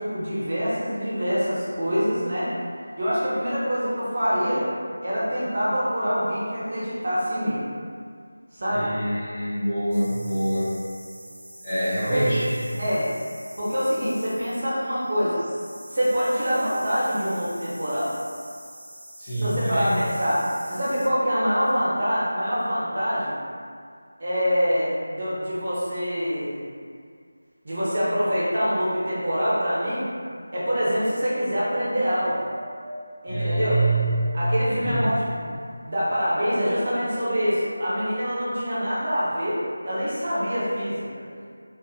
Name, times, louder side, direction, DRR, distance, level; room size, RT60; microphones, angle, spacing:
voice 1, 0.0-2.5 3.0-4.6 5.0-7.6 8.5-9.0 12.1-12.3 12.8-13.1 13.6-15.4 15.9-18.1 19.4-23.4 24.2-26.6 27.6-30.1 30.5-32.4 33.2-33.7 34.3-39.6 39.8-41.2, equal, 35° right, -9 dB, 0.6 m, -25 dB
voice 2, 8.7-10.8 11.6-12.8 19.2-20.0 33.3-35.2, right 1 dB, 15° left, -14 dB, 0.5 m, -25 dB
sound 1, 9.9-21.1, right 1 dB, 90° right, 0.5 m, -45 dB
Wind, 31.9-35.4 36.0-37.0 37.8-37.9, equal, 75° left, 0.4 m, -43 dB
2.6 x 2.3 x 2.4 m, 2.1 s
figure-of-eight pair, 180°, 0 cm